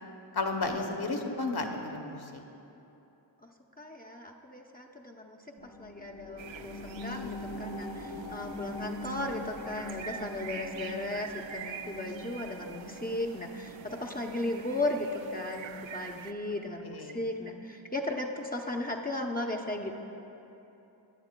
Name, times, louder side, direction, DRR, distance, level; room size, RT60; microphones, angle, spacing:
voice 1, 0.3-2.4 16.8-17.2, left 3 dB, 55° left, 3 dB, 1.1 m, -33 dB
voice 2, 3.8-5.4 5.8-20.0, left 1 dB, 20° left, 0 dB, 0.7 m, -36 dB
sound 1, 5.6-16.7 17.1-17.2, left 2 dB, 70° left, 1.6 m, -43 dB
sound 2, 6.4-16.3, right 8 dB, 90° right, 0.5 m, -46 dB
18.5 x 10.5 x 2.2 m, 3.0 s
wide cardioid pair, 60°, 44 cm